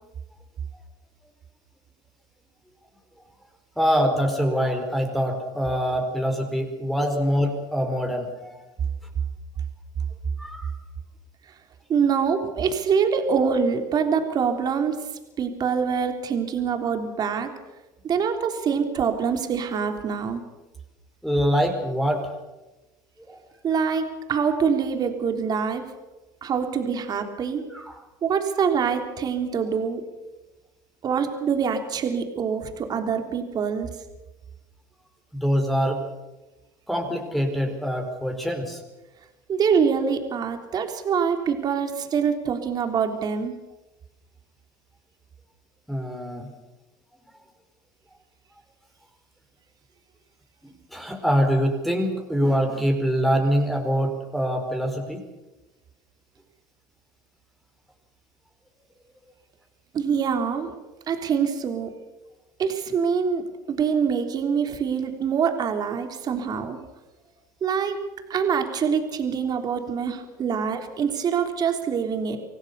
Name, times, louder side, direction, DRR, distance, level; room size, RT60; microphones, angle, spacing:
voice 1, 3.8-8.6 10.4-10.7 21.2-22.3 23.3-23.4 27.7-28.0 35.3-36.0 36.9-38.8 45.9-46.5 50.6-55.2, equal, ahead, 3 dB, 4.6 m, -24 dB
voice 2, 11.9-15.0 15.4-17.5 18.0-20.4 23.6-25.8 26.4-27.6 28.2-30.0 31.0-33.9 39.5-43.5 59.9-60.7 61.1-61.9 62.6-63.4 63.7-66.8 67.6-68.0 68.3-72.4, right 6 dB, 40° right, 6 dB, 3.5 m, -25 dB
25.5 x 17.5 x 6.9 m, 1.1 s
supercardioid pair, 100°, 10 cm